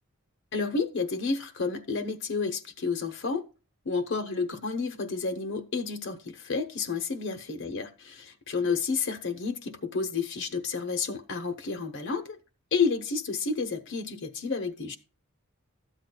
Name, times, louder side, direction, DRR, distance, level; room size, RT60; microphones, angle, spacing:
voice 1, 0.5-3.4 3.8-12.4 12.7-15.0, left 4 dB, 55° left, 6 dB, 0.9 m, -30 dB
13.0 x 8.1 x 2.3 m, 0.30 s
head